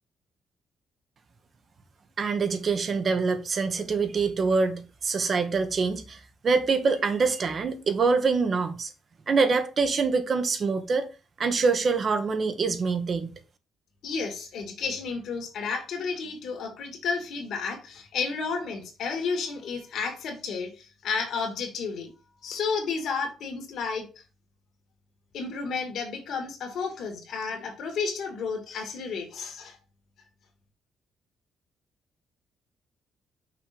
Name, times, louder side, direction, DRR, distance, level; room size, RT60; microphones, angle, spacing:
voice 1, 2.2-8.9 9.3-11.1 11.4-13.3, right 4 dB, 45° right, 1.1 m, -25 dB
voice 2, 14.0-22.1 22.4-24.1 25.3-29.8, left 5 dB, 75° left, 2.0 m, -32 dB
6.0 x 3.7 x 5.1 m
cardioid pair, 90°, 0 cm